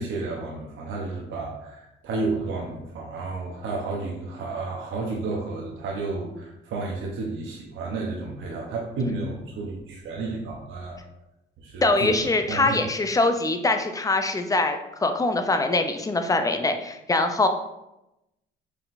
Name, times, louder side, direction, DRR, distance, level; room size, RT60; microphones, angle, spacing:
voice 1, 0.0-11.0 11.6-12.8, right 3 dB, 80° right, -2 dB, 0.8 m, -31 dB
voice 2, 11.8-17.5, left 2 dB, 15° left, 7 dB, 0.4 m, -23 dB
4.6 x 3.6 x 2.5 m, 0.91 s
cardioid pair, 90°, 20 cm